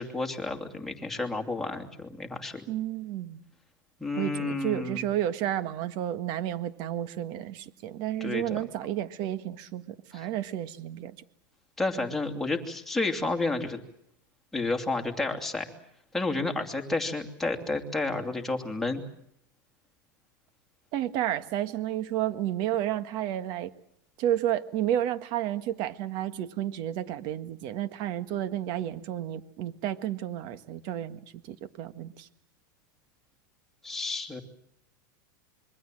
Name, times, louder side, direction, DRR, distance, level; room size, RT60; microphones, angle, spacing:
voice 1, 0.0-2.7 4.0-5.0 8.2-8.6 10.1-10.3 11.8-13.8 14.5-15.7 16.1-19.0 33.8-34.4, left 3 dB, 5° left, 3 dB, 2.7 m, -31 dB
voice 2, 2.7-3.4 4.2-11.1 20.9-23.7 24.2-32.3, right 12 dB, 40° right, 11 dB, 1.6 m, -31 dB
26.5 x 23.0 x 7.7 m, 0.72 s
supercardioid pair, 150°, 11 cm